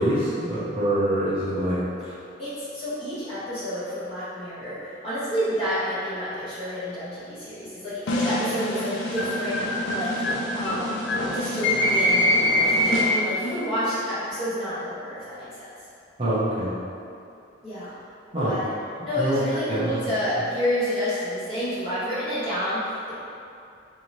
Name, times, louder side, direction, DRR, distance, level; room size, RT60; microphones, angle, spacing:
voice 1, 0.0-1.8 16.2-16.8 18.3-18.6 19.2-19.4 19.7-19.9, right 1 dB, 30° right, -10 dB, 0.6 m, -24 dB
voice 2, 2.4-4.8 5.0-10.1 10.5-11.1 11.3-15.7 17.6-17.9 18.4-18.7 19.0-23.1, equal, 30° left, -14 dB, 1.5 m, -29 dB
sound 1, 8.1-13.5, left 1 dB, 85° left, 0.5 m, -24 dB
4.0 x 2.7 x 3.0 m, 2.5 s
head